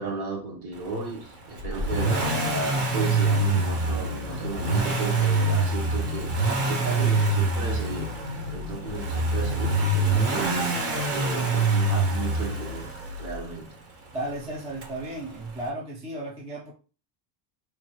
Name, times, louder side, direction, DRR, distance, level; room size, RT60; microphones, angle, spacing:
voice 1, 0.0-8.1 8.5-13.8, right 3 dB, 50° right, 1.3 m, -34 dB
Accelerating revving vroom, 1.6-13.5 14.8-14.9, right 3 dB, 30° right, 0.9 m, -25 dB
sound 1, 1.9-12.9, left 3 dB, 85° right, 1.5 m, -37 dB
voice 2, 14.1-16.7, right 1 dB, 15° right, 0.5 m, -34 dB
4.4 x 2.4 x 3.0 m
cardioid pair, 150°, 48 cm